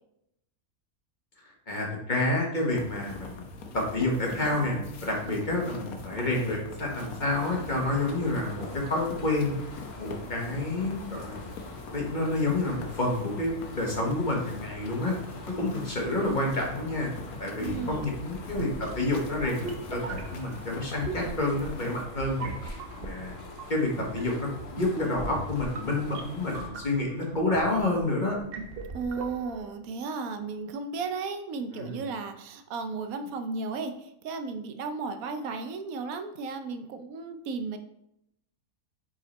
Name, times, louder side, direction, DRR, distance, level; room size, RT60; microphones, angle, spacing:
voice 1, 1.7-3.5 3.7-9.5 10.0-11.6 11.9-15.2 15.5-17.1 17.4-23.4 23.7-28.4 31.7-32.0, left 2 dB, 35° left, -1 dB, 1.3 m, -29 dB
sound 1, 2.7-22.1, left 4 dB, 80° left, 1.3 m, -44 dB
sound 2, 7.3-26.7, left 3 dB, 50° left, 1.2 m, -45 dB
voice 2, 17.6-18.0 28.9-37.8, right 4 dB, 80° right, 8 dB, 1.0 m, -34 dB
sound 3, 17.7-29.7, right 3 dB, 50° right, 0.8 m, -40 dB
5.5 x 4.3 x 4.1 m, 0.80 s
omnidirectional pair, 1.5 m